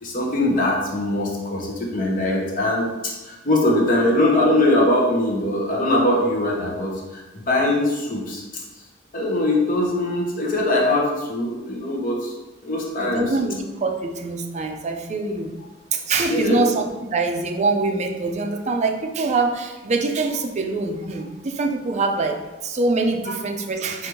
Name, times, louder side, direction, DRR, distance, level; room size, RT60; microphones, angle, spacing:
voice 1, 0.0-8.4 9.1-12.3 12.6-13.4 16.3-16.7, left 1 dB, 45° left, -2 dB, 0.7 m, -21 dB
voice 2, 13.0-15.6 15.9-24.1, right 3 dB, 35° right, 4 dB, 0.4 m, -24 dB
4.8 x 2.5 x 3.0 m, 1.1 s
head